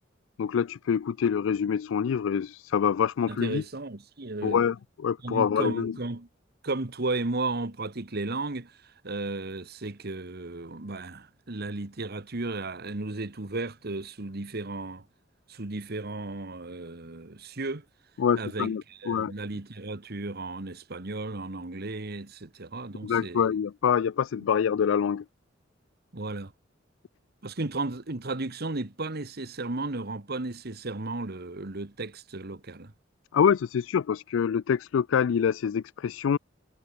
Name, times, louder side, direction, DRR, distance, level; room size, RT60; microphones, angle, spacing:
voice 1, 0.4-3.6 4.4-5.9 18.2-19.3 23.0-25.2 33.3-36.4, left 7 dB, 85° left, 0.4 m, -26 dB
voice 2, 3.3-4.6 5.2-6.3 6.6-15.0 15.5-17.8 18.4-23.5 26.1-26.5 27.4-32.9, right 2 dB, 55° right, 1.5 m, -34 dB
head